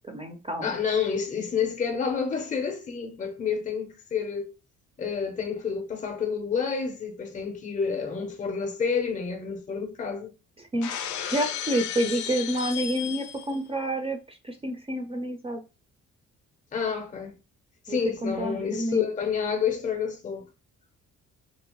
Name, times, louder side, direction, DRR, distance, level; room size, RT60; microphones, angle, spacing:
voice 1, 0.1-0.8 10.6-15.6 17.9-19.1, right 1 dB, 20° right, 0.5 m, -29 dB
voice 2, 0.6-4.5 5.0-10.3 16.7-17.4 17.8-20.5, left 6 dB, 25° left, 0.6 m, -29 dB
Shatter, 10.8-13.6, left 10 dB, 70° left, 0.5 m, -34 dB
2.7 x 2.0 x 2.9 m
cardioid pair, 90°, 30 cm